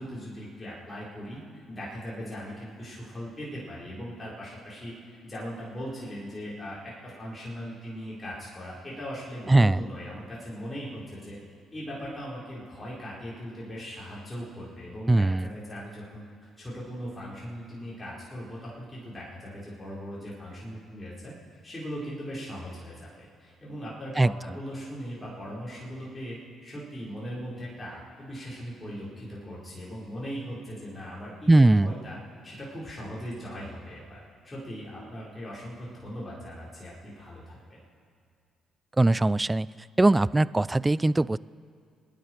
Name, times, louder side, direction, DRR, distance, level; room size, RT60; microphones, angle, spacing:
voice 1, 0.0-1.4 1.7-4.9 5.2-11.4 11.7-16.2 16.6-21.3 21.6-32.2 32.4-37.8, equal, 25° left, -7 dB, 5.1 m, -39 dB
voice 2, 9.5-9.8 15.1-15.5 24.2-24.3 31.5-31.9 39.0-39.7 40.0-41.4, right 2 dB, 20° right, 20 dB, 0.4 m, -20 dB
25.0 x 10.5 x 4.8 m, 2.3 s
hypercardioid pair, 50°, 0 cm